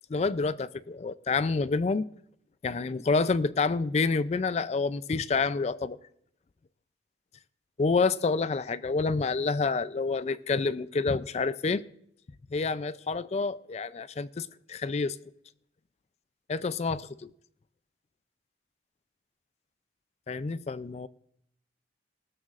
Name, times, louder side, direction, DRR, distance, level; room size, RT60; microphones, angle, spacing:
voice 1, 0.1-2.1 2.6-6.0 7.8-11.8 12.5-15.2 16.5-17.3 20.3-21.1, left 4 dB, 35° left, 0.4 m, -28 dB
19.5 x 13.0 x 2.5 m
head